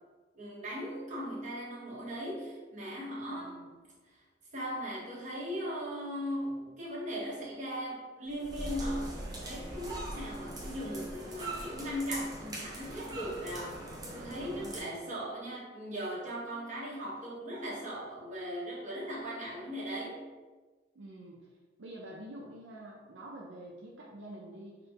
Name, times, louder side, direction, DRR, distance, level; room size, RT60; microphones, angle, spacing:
voice 1, 0.3-3.7 4.0-4.2 4.5-13.8 14.1-20.3, equal, 40° right, -6 dB, 1.1 m, -38 dB
voice 2, 3.3-3.7 14.6-15.0 20.9-21.5 21.8-24.8, right 1 dB, 80° right, -2 dB, 0.5 m, -47 dB
sound 1, 8.3-14.8, right 1 dB, 20° right, 0.6 m, -41 dB
5.1 x 2.1 x 2.8 m, 1.3 s
head